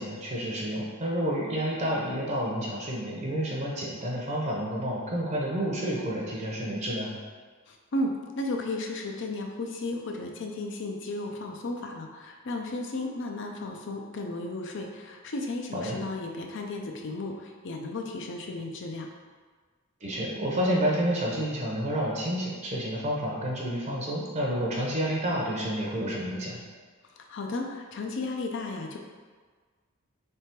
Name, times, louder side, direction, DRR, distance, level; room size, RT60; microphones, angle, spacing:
voice 1, 0.0-7.2 15.7-16.0 20.0-26.6, equal, 35° right, -3 dB, 0.7 m, -29 dB
voice 2, 7.7-19.1 27.2-29.0, left 2 dB, 60° left, 2 dB, 0.5 m, -34 dB
3.4 x 3.3 x 4.4 m, 1.5 s
head